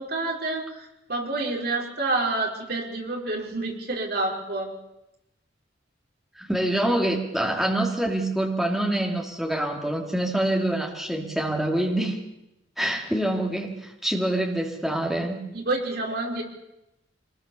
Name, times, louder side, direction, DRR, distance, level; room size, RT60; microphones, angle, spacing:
voice 1, 0.0-4.7 15.5-16.4, right 2 dB, 50° right, 0 dB, 4.9 m, -28 dB
voice 2, 6.4-12.2 12.8-15.4, right 1 dB, ahead, 0 dB, 3.1 m, -26 dB
25.0 x 20.0 x 7.1 m, 0.90 s
head